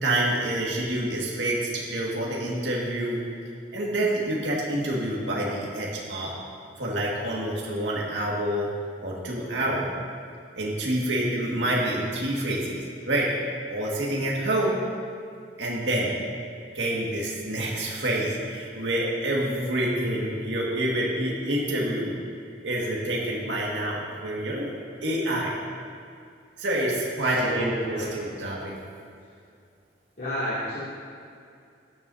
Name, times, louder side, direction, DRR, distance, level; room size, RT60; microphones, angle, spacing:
voice 1, 0.0-3.2 3.7-6.3 6.8-8.7 9.0-9.9 10.6-13.3 13.7-14.8 15.6-16.2 16.7-22.2 22.6-24.7 25.0-25.5 26.6-28.7, right 1 dB, 90° right, -4 dB, 1.9 m, -27 dB
voice 2, 19.4-19.7 27.2-28.4 30.2-30.8, equal, 50° left, -12 dB, 2.8 m, -32 dB
16.0 x 10.5 x 2.8 m, 2.4 s
head